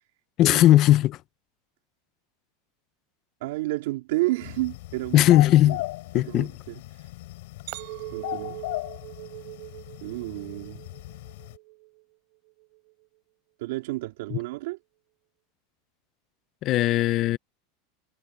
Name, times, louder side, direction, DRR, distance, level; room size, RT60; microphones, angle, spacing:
voice 1, 0.4-1.2 5.1-5.8 6.1-6.5 14.3-14.4 16.6-17.4, left 14 dB, 35° left, 0.7 m, -18 dB
voice 2, 3.4-5.4 5.7-5.8 6.1-6.8 8.1-8.6 10.0-10.8 13.6-14.8, right 20 dB, 70° right, 2.7 m, -31 dB
sound 1, 4.4-11.6, left 19 dB, 65° left, 6.2 m, -38 dB
Chink clink, 7.7-12.0 12.5-12.9, right 25 dB, 50° right, 4.6 m, -41 dB
supercardioid pair, 165°, 0 cm